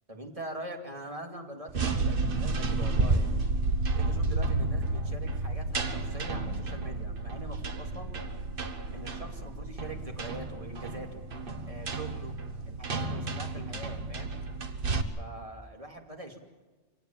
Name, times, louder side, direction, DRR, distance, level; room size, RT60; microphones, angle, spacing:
voice 1, 0.1-3.4 3.9-8.1 8.9-11.3 11.7-12.4 12.7-14.3 15.2-16.4, right 1 dB, 25° right, 3 dB, 2.7 m, -43 dB
sound 1, 1.7-15.0, right 3 dB, 45° right, 1.3 m, -31 dB
25.0 x 17.5 x 7.4 m, 1.2 s
omnidirectional pair, 1.4 m